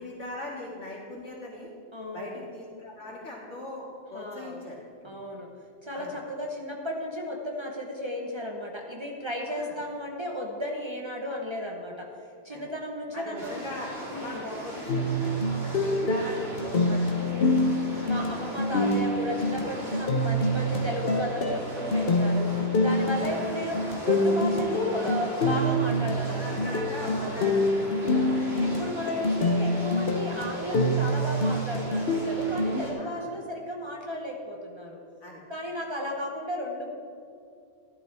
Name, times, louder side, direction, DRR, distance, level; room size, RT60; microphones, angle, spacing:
voice 1, 0.0-1.7 2.1-5.2 5.9-6.1 9.5-9.7 12.5-12.7 13.1-15.3 15.6-17.2 17.9-18.1 22.9-23.5 26.2-28.4 28.9-29.3 32.9-33.3 35.2-35.4 36.1-36.2, left 1 dB, 75° left, -4 dB, 2.7 m, -40 dB
voice 2, 1.9-2.4 4.1-4.6 5.0-5.5 5.8-12.1 12.4-13.5 14.1-14.5 15.4-16.2 17.2-22.5 22.8-27.5 28.6-35.0 35.5-36.9, equal, 25° right, 0 dB, 1.1 m, -34 dB
sound 1, 13.4-32.9, right 1 dB, 55° right, 2.6 m, -39 dB
sound 2, 14.9-32.8, left 1 dB, 55° left, 1.1 m, -26 dB
13.5 x 11.5 x 3.5 m, 2.4 s
omnidirectional pair, 1.2 m